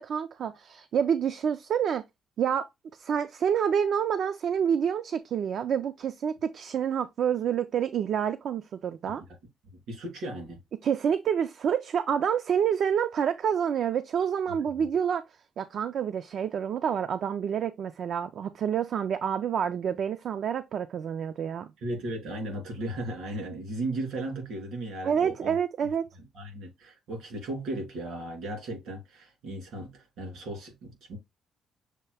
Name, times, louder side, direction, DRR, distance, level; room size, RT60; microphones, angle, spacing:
voice 1, 0.0-2.0 2.4-2.7 3.0-9.2 10.8-15.2 15.6-21.7 25.0-26.0, right 8 dB, 65° right, 0.3 m, -28 dB
voice 2, 9.9-10.6 14.8-14.9 21.8-25.6 26.3-31.2, right 1 dB, 80° right, 2.7 m, -36 dB
6.6 x 2.2 x 3.3 m
cardioid pair, 90°, 0 cm